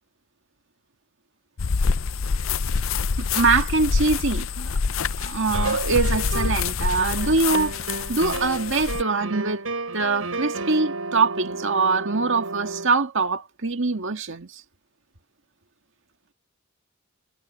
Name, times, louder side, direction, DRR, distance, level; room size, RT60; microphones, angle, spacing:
sound 1, 1.6-9.0, left 5 dB, 65° left, 0.6 m, -26 dB
voice 1, 3.2-4.8 5.2-7.7 8.1-9.6 9.9-14.6, right 4 dB, 60° right, 2.0 m, -23 dB
sound 2, 5.5-6.7 7.0-12.9, right 3 dB, 80° right, 7.3 m, -32 dB
head